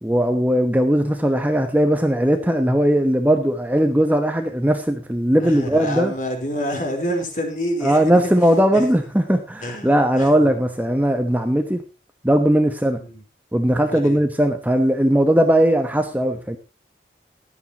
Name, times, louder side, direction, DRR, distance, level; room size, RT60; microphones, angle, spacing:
voice 1, 0.0-6.1 7.8-11.8 12.2-13.0 13.5-16.6, equal, 10° right, 6 dB, 1.0 m, -18 dB
voice 2, 5.4-8.3 8.7-9.0 9.6-10.3 13.0-13.2 13.9-14.2, equal, 45° left, 3 dB, 3.9 m, -28 dB
16.5 x 12.0 x 2.9 m, 0.30 s
head